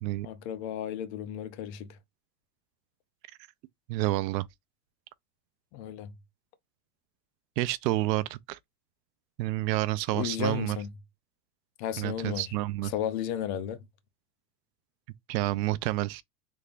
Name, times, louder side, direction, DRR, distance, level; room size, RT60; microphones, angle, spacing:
voice 1, 0.2-1.9 5.7-6.1 10.1-10.9 11.8-12.4 12.8-13.8, left 10 dB, 45° left, 0.5 m, -34 dB
voice 2, 3.9-4.5 7.6-8.6 9.4-10.8 12.0-12.9 15.3-16.2, right 18 dB, 80° right, 0.5 m, -29 dB
3.4 x 3.3 x 2.4 m
supercardioid pair, 145°, 50 cm